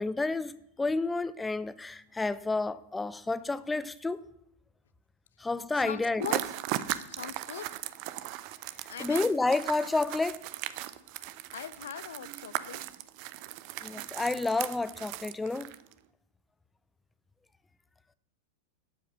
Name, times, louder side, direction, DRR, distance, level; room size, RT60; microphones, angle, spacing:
voice 1, 0.0-4.2 5.4-6.4 9.0-10.4 13.8-15.7, left 3 dB, 10° left, 0.7 m, -30 dB
voice 2, 5.8-6.4 7.0-7.7 8.9-9.3 11.5-12.8, left 9 dB, 65° left, 0.6 m, -40 dB
sound 1, 6.2-15.9, right 14 dB, 45° right, 0.7 m, -37 dB
12.0 x 8.4 x 7.4 m
figure-of-eight pair, 90°, 0 cm